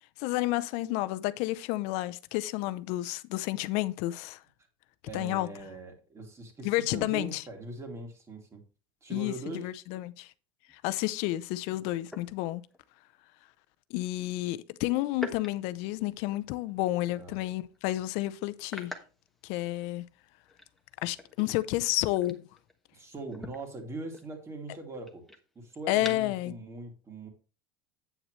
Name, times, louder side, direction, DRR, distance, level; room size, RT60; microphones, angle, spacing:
voice 1, 0.2-4.4 5.1-5.5 6.6-7.4 9.1-10.3 10.8-12.6 13.9-18.9 19.4-20.0 21.0-22.5 25.9-26.5, left 17 dB, 65° left, 0.7 m, -30 dB
voice 2, 5.1-8.6 9.0-9.7 17.1-17.4 22.9-25.2 25.5-27.3, right 3 dB, 25° right, 2.6 m, -41 dB
sound 1, 10.7-10.8 12.0-12.9 15.1-16.7 17.1-17.4 17.7-17.8 18.6-20.1 20.4-22.9 23.2-26.4, left 1 dB, ahead, 1.3 m, -46 dB
8.7 x 8.0 x 3.2 m
supercardioid pair, 125°, 12 cm